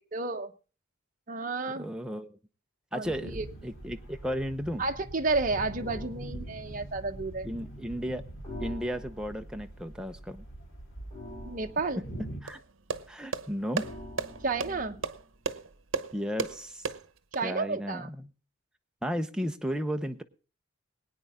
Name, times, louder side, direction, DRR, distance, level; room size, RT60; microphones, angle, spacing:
voice 1, 0.1-0.5 1.3-1.9 2.9-3.5 4.8-7.5 11.4-12.0 14.4-15.0 17.3-18.1, right 3 dB, 40° right, 5 dB, 1.0 m, -31 dB
voice 2, 1.7-2.4 2.9-4.8 7.4-8.2 8.6-10.4 12.0-12.1 12.4-12.6 13.1-13.8 16.1-16.8 17.4-18.3 19.0-20.2, equal, 5° right, 5 dB, 0.8 m, -34 dB
sound 1, 3.0-12.4, right 1 dB, 75° left, 3.4 m, -43 dB
sound 2, 5.8-6.2 8.4-9.4 11.1-12.2 13.8-15.1, left 1 dB, 25° left, 7.6 m, -44 dB
sound 3, 12.5-17.4, right 4 dB, 75° right, 1.0 m, -35 dB
21.5 x 9.4 x 3.6 m, 0.37 s
head